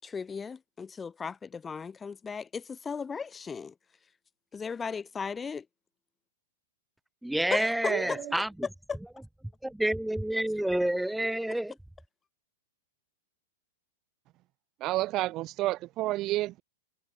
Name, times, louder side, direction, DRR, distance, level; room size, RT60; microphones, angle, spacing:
voice 1, 0.0-3.7 4.5-5.6 7.5-7.9 8.9-9.0, left 5 dB, 15° left, 4.1 m, -36 dB
voice 2, 7.2-8.7 9.6-11.7, right 1 dB, 5° right, 3.7 m, -29 dB
voice 3, 7.9-8.4 14.8-16.6, right 17 dB, 35° right, 3.7 m, -30 dB
figure-of-eight pair, 105°, 0 cm